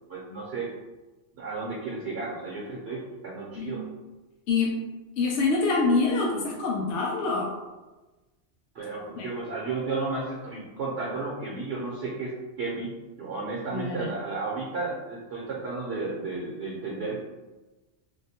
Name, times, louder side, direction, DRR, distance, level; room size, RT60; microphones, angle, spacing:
voice 1, 0.1-0.7 1.4-3.8 8.7-12.9 13.2-17.2, right 3 dB, 60° right, -4 dB, 0.9 m, -33 dB
voice 2, 4.5-4.8 5.2-7.5 9.2-9.3 13.7-14.1, left 3 dB, 80° left, -3 dB, 0.9 m, -25 dB
2.7 x 2.2 x 4.1 m, 1.1 s
omnidirectional pair, 1.2 m